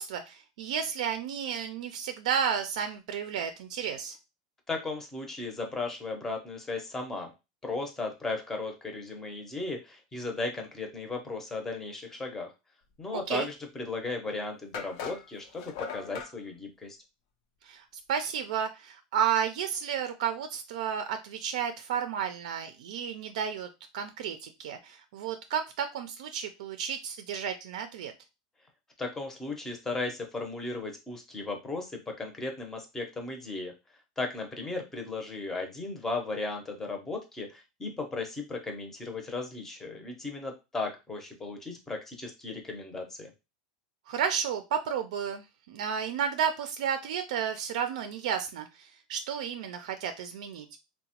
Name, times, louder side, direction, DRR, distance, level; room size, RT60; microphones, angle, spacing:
voice 1, 0.0-4.2 13.1-13.5 17.6-23.7 23.9-28.1 44.1-50.7, right 8 dB, 75° right, 7 dB, 0.4 m, -32 dB
voice 2, 4.7-7.3 7.6-12.5 13.0-17.0 29.0-33.7 34.2-43.3, left 3 dB, 10° left, 3 dB, 0.6 m, -36 dB
sound 1, 13.9-14.0 14.7-16.3, left 6 dB, 55° left, 0.5 m, -39 dB
2.9 x 2.1 x 2.8 m, 0.26 s
supercardioid pair, 155°, 4 cm